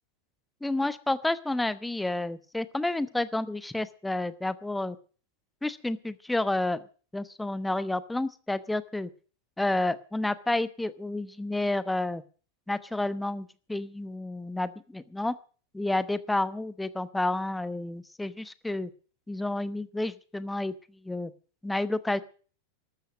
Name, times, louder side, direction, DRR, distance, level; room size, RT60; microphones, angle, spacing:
voice 1, 0.6-5.0 5.6-6.8 7.1-9.1 9.6-12.2 12.7-15.3 15.7-18.9 19.3-20.7 21.0-21.3 21.6-22.2, left 2 dB, 5° left, 16 dB, 1.0 m, -30 dB
14.0 x 12.5 x 6.2 m, 0.39 s
figure-of-eight pair, 90°, 0 cm